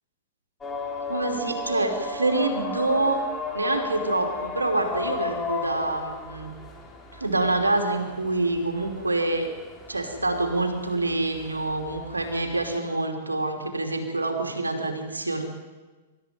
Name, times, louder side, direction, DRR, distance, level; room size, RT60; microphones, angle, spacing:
sound 1, 0.6-12.8, left 4 dB, 15° left, 4.1 m, -35 dB
voice 1, 1.1-3.2 3.5-6.5 7.1-9.5 9.9-15.4, right 2 dB, 90° right, 5 dB, 3.0 m, -26 dB
26.5 x 13.5 x 9.5 m, 1.3 s
figure-of-eight pair, 105°, 0 cm